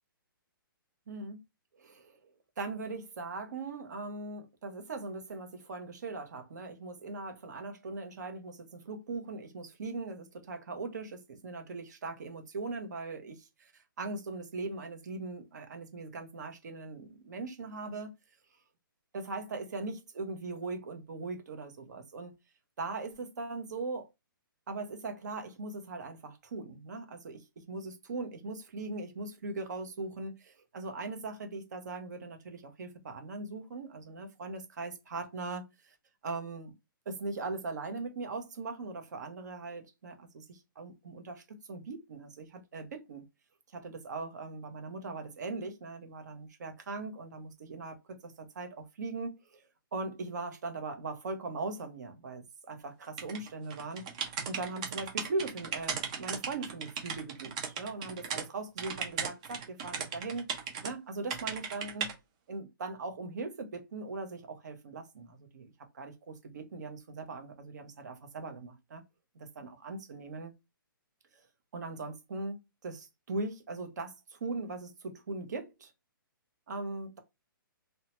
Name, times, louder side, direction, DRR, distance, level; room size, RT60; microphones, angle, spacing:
voice 1, 1.1-1.4 1.7-2.2 2.6-18.1 19.1-22.3 22.8-24.1 24.7-35.9 36.2-36.7 37.1-43.2 43.7-49.6 49.9-54.0 54.5-60.5 60.8-62.1 62.5-69.0 69.3-70.5 71.3-71.4 71.7-75.9 76.7-77.2, right 3 dB, 50° right, 0.9 m, -40 dB
sound 1, 53.2-58.4 58.8-60.9 61.3-62.1, right 6 dB, 20° right, 0.4 m, -37 dB
2.7 x 2.1 x 2.9 m
hypercardioid pair, 170°, 12 cm